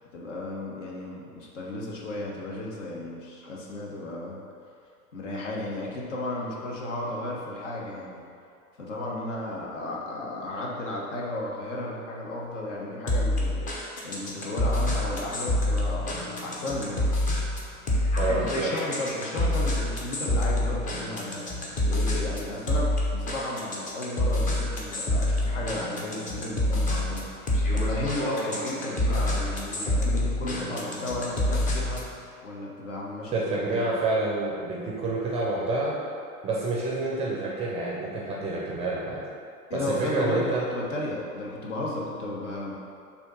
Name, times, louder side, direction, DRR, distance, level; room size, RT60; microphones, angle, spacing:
voice 1, 0.1-4.4 5.1-8.2 8.8-17.1 18.3-21.4 21.9-27.3 27.7-32.0 32.4-34.0 39.7-42.8, left 1 dB, 55° left, -3 dB, 1.4 m, -34 dB
sound 1, 13.1-32.1, left 1 dB, 20° left, 0.8 m, -27 dB
voice 2, 18.2-18.7 33.3-35.9 36.4-39.2 39.7-40.6, right 2 dB, 15° right, -5 dB, 0.7 m, -28 dB
6.8 x 2.9 x 5.5 m, 2.3 s
figure-of-eight pair, 100°, 44 cm